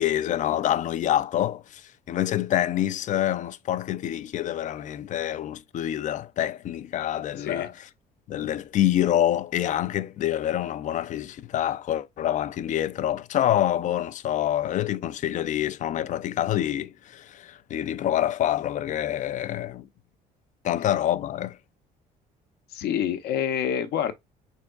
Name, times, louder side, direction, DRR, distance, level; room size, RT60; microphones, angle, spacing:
voice 1, 0.0-7.7 8.3-19.9 20.6-21.6, left 12 dB, 50° left, 0.4 m, -26 dB
voice 2, 7.4-7.7 22.7-24.1, left 9 dB, 75° left, 0.7 m, -27 dB
4.4 x 3.5 x 2.3 m
cardioid pair, 110°, 17 cm